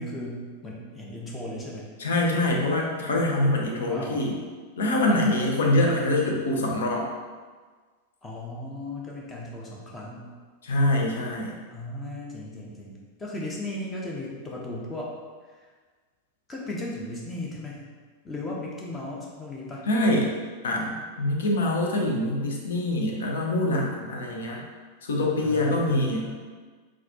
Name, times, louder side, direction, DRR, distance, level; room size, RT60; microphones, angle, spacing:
voice 1, 0.0-1.9 3.8-4.2 8.2-10.3 11.7-15.2 15.4-15.7 16.5-17.9 18.2-19.8 25.4-26.3, left 1 dB, 15° left, -3 dB, 0.6 m, -36 dB
voice 2, 2.0-4.4 4.8-7.1 10.6-11.6 19.9-20.3 20.6-24.6 25.0-26.3, left 1 dB, 65° left, -1 dB, 0.6 m, -24 dB
4.0 x 2.3 x 2.7 m, 1.5 s
figure-of-eight pair, 90°, 0 cm